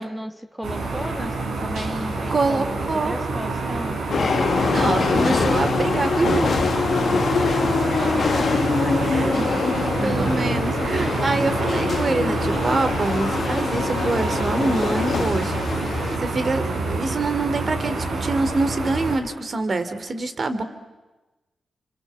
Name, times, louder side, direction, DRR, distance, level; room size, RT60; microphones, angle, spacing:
voice 1, 0.0-4.0 7.9-10.5 10.8-10.9, equal, 10° right, 8 dB, 1.7 m, -34 dB
sound 1, 0.6-19.2, right 3 dB, 90° right, 4.4 m, -27 dB
voice 2, 2.3-3.1 4.4-6.6 9.0-9.3 10.0-15.9 16.2-20.6, right 3 dB, 50° right, 10 dB, 2.6 m, -25 dB
sound 2, 4.1-16.2, left 5 dB, 65° left, 1.3 m, -24 dB
28.0 x 26.0 x 7.4 m, 1.1 s
cardioid pair, 60°, 0 cm